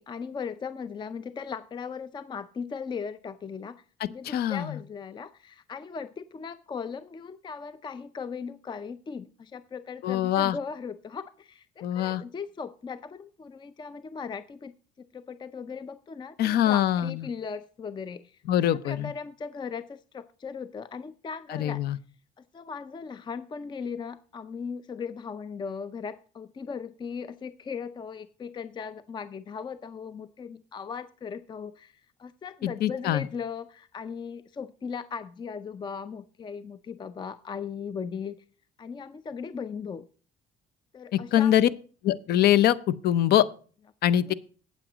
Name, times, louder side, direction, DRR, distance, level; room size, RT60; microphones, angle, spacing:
voice 1, 0.0-21.8 22.4-38.4 38.8-40.0 40.9-41.5 44.3-44.4, left 6 dB, 25° left, 14 dB, 0.5 m, -38 dB
voice 2, 4.2-4.8 10.0-10.6 11.8-12.2 16.4-17.3 18.5-19.1 21.5-22.0 32.6-33.2 41.1-41.7 42.0-43.5 44.0-44.3, left 11 dB, 70° left, 18 dB, 0.7 m, -23 dB
8.9 x 8.3 x 5.0 m, 0.40 s
cardioid pair, 110°, 17 cm